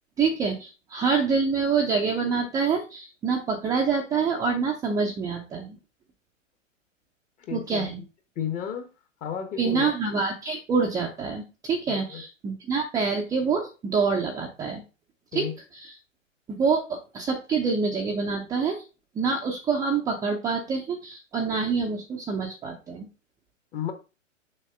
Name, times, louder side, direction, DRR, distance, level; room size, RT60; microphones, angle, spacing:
voice 1, 0.2-5.8 7.5-8.0 9.6-14.8 15.3-15.5 15.7-15.9 16.6-18.8 19.1-23.1, right 5 dB, 10° right, 0.5 m, -26 dB
voice 2, 7.4-8.0 8.4-8.9 9.2-9.9 11.9-12.2 15.3-15.5 23.7-23.9, left 8 dB, 20° left, 0.9 m, -33 dB
6.5 x 2.8 x 5.5 m
hypercardioid pair, 125°, 39 cm